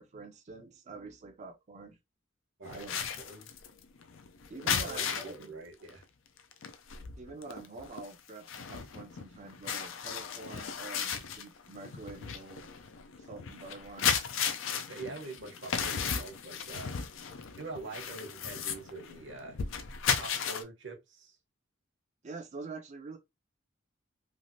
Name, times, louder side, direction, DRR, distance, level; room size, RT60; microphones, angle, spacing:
voice 1, 0.0-2.0 2.7-3.1 4.5-5.5 7.2-12.7 13.2-14.2 22.2-23.2, right 3 dB, 35° right, 0.5 m, -46 dB
sound 1, 2.6-5.4 5.9-6.0 6.4-20.6, left 7 dB, 75° left, 0.4 m, -35 dB
voice 2, 2.6-3.5 4.6-6.0 14.7-16.9 17.6-19.6 20.2-21.4, right 3 dB, 65° right, 1.0 m, -44 dB
3.2 x 2.4 x 2.6 m
head